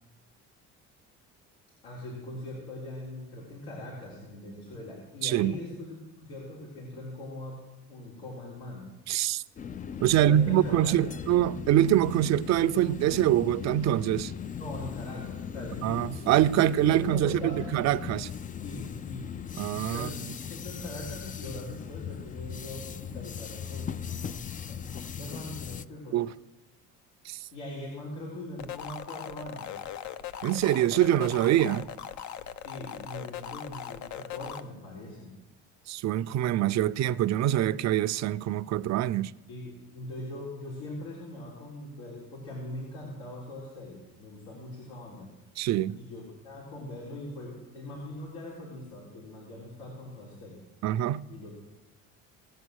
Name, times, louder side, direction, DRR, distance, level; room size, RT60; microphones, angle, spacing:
voice 1, 1.8-7.6 7.9-8.8 10.1-11.2 14.6-16.1 16.9-17.6 18.6-19.3 19.7-26.2 27.5-29.9 32.6-35.3 39.5-45.3 45.9-50.6 51.3-51.5, left 1 dB, 90° left, 3.8 m, -41 dB
voice 2, 5.2-5.5 9.1-9.4 10.0-14.3 15.8-18.3 19.6-20.1 26.1-26.3 27.3-27.4 30.4-31.9 35.9-39.3 45.6-46.0 50.8-51.2, right 12 dB, 55° right, 0.6 m, -25 dB
sound 1, 9.6-25.9, left 8 dB, 25° left, 0.4 m, -39 dB
sound 2, 28.6-34.6, left 10 dB, 60° left, 0.9 m, -39 dB
18.5 x 8.1 x 6.4 m
supercardioid pair, 95°, 33 cm